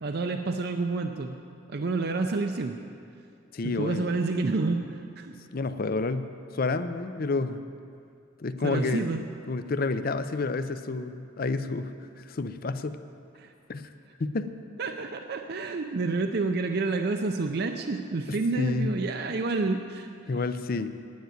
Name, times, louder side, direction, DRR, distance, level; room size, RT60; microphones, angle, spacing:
voice 1, 0.0-1.4 1.7-2.8 3.6-5.3 8.6-9.2 13.4-13.5 14.8-20.1, right 3 dB, 50° right, 5 dB, 0.5 m, -29 dB
voice 2, 3.5-4.1 5.5-7.6 8.4-9.1 9.5-13.0 13.7-13.9 14.2-14.5 18.3-18.9 20.3-20.9, left 3 dB, 45° left, 11 dB, 0.5 m, -30 dB
9.5 x 9.3 x 9.0 m, 2.5 s
head